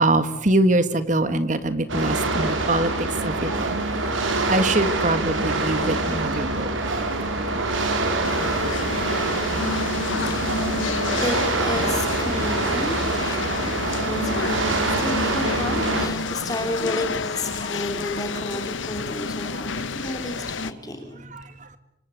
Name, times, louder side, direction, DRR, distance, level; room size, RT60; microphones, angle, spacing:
voice 1, 0.0-3.8 4.5-6.7 8.2-8.4 19.7-19.9 21.3-21.7, right 2 dB, 40° right, 11 dB, 1.8 m, -23 dB
sound 1, 1.9-16.1, right 2 dB, 90° right, 4.3 m, -25 dB
voice 2, 4.0-4.8 5.1-5.5 9.7-21.2, left 1 dB, 20° left, 4 dB, 3.0 m, -32 dB
sound 2, 8.2-20.7, left 4 dB, 80° left, 0.9 m, -30 dB
26.5 x 25.5 x 7.8 m, 0.81 s
head